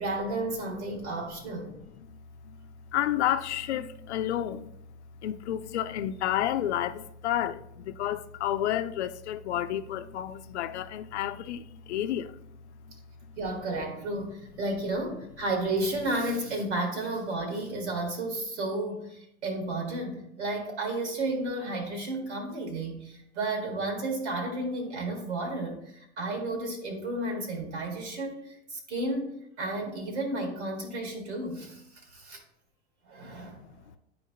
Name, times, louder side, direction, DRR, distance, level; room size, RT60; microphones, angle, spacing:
voice 1, 0.0-1.7 13.4-32.4 33.0-33.6, right 2 dB, 85° right, 1.7 m, -32 dB
voice 2, 2.9-4.7 5.2-12.3, left 11 dB, 80° left, 0.5 m, -30 dB
9.4 x 4.5 x 2.7 m
hypercardioid pair, 90°, 33 cm